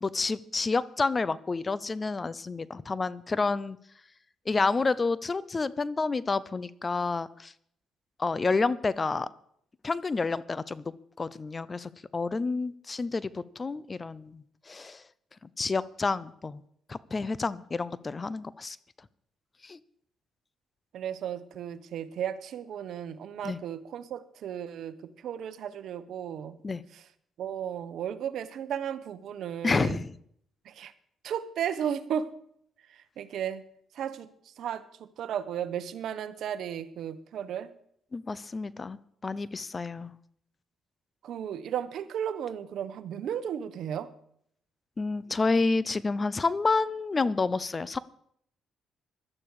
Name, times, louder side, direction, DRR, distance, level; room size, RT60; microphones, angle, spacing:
voice 1, 0.0-3.8 4.5-7.5 8.2-9.3 9.8-10.9 11.2-15.0 15.6-16.6 16.9-18.8 19.6-19.8 23.4-23.6 26.6-26.8 29.6-30.1 38.1-39.0 39.2-40.1 45.0-48.0, left 3 dB, 30° left, 18 dB, 0.6 m, -29 dB
voice 2, 20.9-26.6 26.9-27.0 27.4-30.0 30.6-30.9 31.2-32.3 32.9-33.6 33.9-34.3 34.6-34.8 35.2-37.7 41.2-44.1, right 9 dB, 70° right, 13 dB, 1.0 m, -34 dB
17.0 x 12.0 x 4.9 m, 0.67 s
cardioid pair, 90°, 0 cm